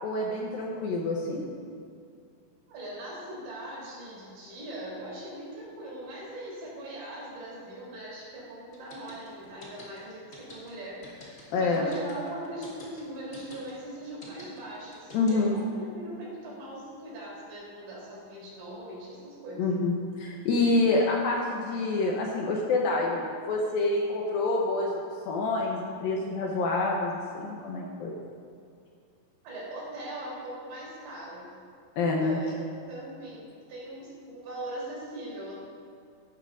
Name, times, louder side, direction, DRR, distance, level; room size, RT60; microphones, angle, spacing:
voice 1, 0.0-1.5 11.5-11.9 15.1-15.6 19.6-24.9 25.3-28.1 32.0-32.4, left 3 dB, 75° left, -2 dB, 2.2 m, -27 dB
voice 2, 2.7-19.6 29.4-31.5 32.2-35.6, right 1 dB, 80° right, -6 dB, 5.7 m, -40 dB
sound 1, 8.7-15.6, left 1 dB, 30° left, 1.5 m, -48 dB
16.0 x 12.0 x 2.5 m, 2.3 s
omnidirectional pair, 5.1 m